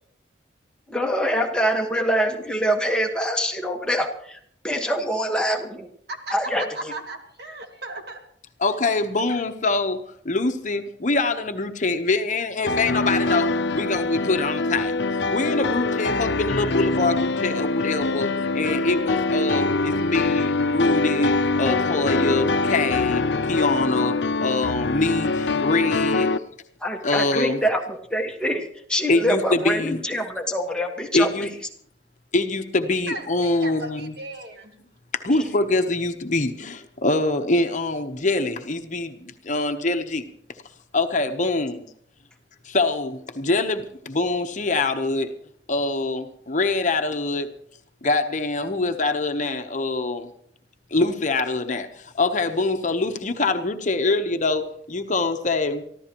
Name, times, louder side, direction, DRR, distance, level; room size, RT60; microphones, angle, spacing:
voice 1, 0.9-4.4 4.6-5.9 6.3-6.9 26.8-31.5, equal, 5° left, 1 dB, 1.4 m, -25 dB
voice 2, 6.1-8.2 33.1-34.7, right 2 dB, 60° right, 4 dB, 2.0 m, -36 dB
voice 3, 8.6-14.9 15.3-26.3 27.0-27.6 29.1-30.0 31.1-31.5 32.3-34.2 35.1-40.2 40.9-41.8 42.6-45.3 45.7-47.5 48.0-50.3 50.9-55.8, left 2 dB, 45° left, 7 dB, 1.0 m, -24 dB
sound 1, 12.7-26.4, left 3 dB, 70° left, 0.6 m, -24 dB
24.0 x 14.5 x 3.0 m, 0.65 s
head